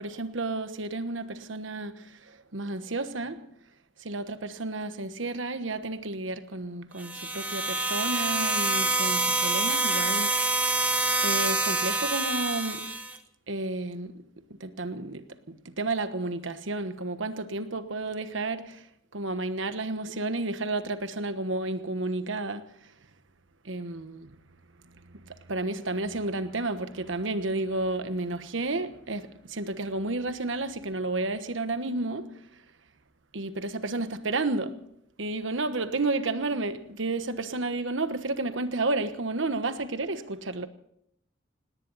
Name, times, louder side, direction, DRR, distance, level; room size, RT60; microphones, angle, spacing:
voice 1, 0.0-3.5 4.0-10.5 11.2-12.9 13.5-14.2 14.5-18.9 19.1-22.6 23.6-24.3 24.9-32.4 33.3-34.8 35.2-40.7, right 2 dB, 80° right, 1.2 m, -31 dB
sound 1, 7.0-13.2, right 2 dB, 10° right, 1.0 m, -26 dB
19.0 x 18.0 x 4.1 m
head